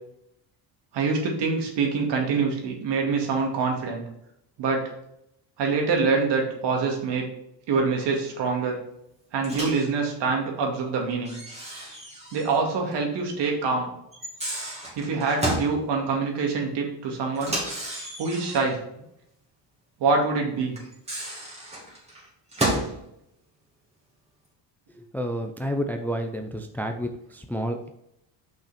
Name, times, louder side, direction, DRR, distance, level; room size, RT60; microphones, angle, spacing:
voice 1, 0.9-4.0 4.6-4.8 5.6-7.3 7.7-8.8 9.3-11.4 12.3-13.9 15.0-17.5 18.2-18.8 20.0-20.8, right 4 dB, 65° right, 1 dB, 2.3 m, -25 dB
Microwave oven, 9.4-9.9 11.2-12.6 12.9-13.0 14.1-15.7 17.3-18.8 20.8-22.9, right 1 dB, 15° right, 2.5 m, -31 dB
voice 2, 25.0-27.9, equal, 5° left, 5 dB, 0.5 m, -30 dB
6.0 x 5.7 x 4.3 m, 0.79 s
cardioid pair, 120°, 44 cm